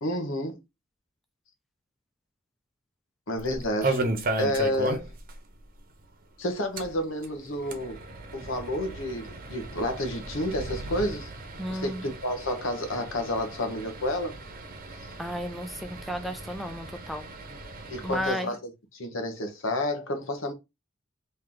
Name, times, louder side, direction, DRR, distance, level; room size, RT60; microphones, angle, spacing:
voice 1, 0.0-0.6 3.3-4.0 4.4-5.1 6.4-8.0 8.3-11.3 11.7-14.3 17.9-20.5, left 1 dB, 70° left, 1.0 m, -30 dB
sound 1, 3.4-5.3 5.6-5.7 6.0-6.1 6.6-18.3, right 2 dB, 45° right, 0.8 m, -36 dB
voice 2, 11.6-12.1 15.2-17.2 18.0-18.5, equal, ahead, 0.4 m, -33 dB
3.2 x 2.7 x 3.8 m
head